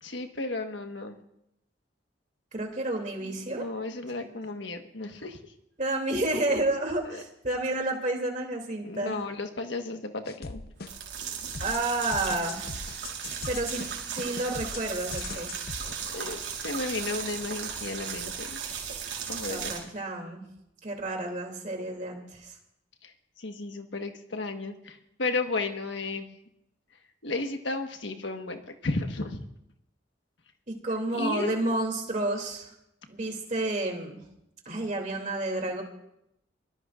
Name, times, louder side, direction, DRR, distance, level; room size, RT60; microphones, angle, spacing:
voice 1, 0.0-1.2 3.2-5.4 7.1-7.2 8.8-10.6 16.1-18.6 19.3-19.7 23.0-23.1 23.4-26.3 27.2-29.4 31.1-31.6, left 3 dB, 75° left, 5 dB, 1.4 m, -34 dB
voice 2, 2.5-3.6 5.8-9.2 11.6-12.7 13.5-13.8 14.1-15.5 19.5-20.4 20.8-22.5 30.8-32.7 33.1-34.2 34.6-35.8, right 2 dB, 40° right, 2 dB, 2.9 m, -30 dB
sound 1, 10.2-11.2 11.5-16.1, left 4 dB, 55° left, 0.6 m, -40 dB
sound 2, 10.8-19.8, right 7 dB, 70° right, 4.1 m, -36 dB
24.0 x 18.0 x 2.5 m, 0.82 s
head